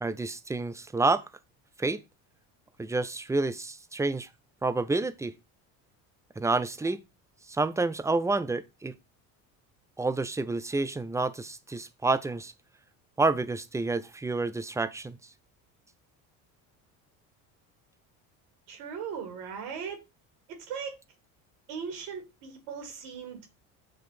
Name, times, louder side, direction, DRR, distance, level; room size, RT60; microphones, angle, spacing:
voice 1, 0.0-1.3 1.8-2.0 2.8-4.3 4.6-5.3 6.4-7.0 7.5-8.9 10.0-12.5 13.2-15.2, right 3 dB, 5° right, 0.6 m, -29 dB
voice 2, 18.7-20.0 20.5-20.9 21.7-23.6, right 6 dB, 75° right, 2.7 m, -38 dB
7.3 x 3.1 x 4.3 m
supercardioid pair, 80°, 41 cm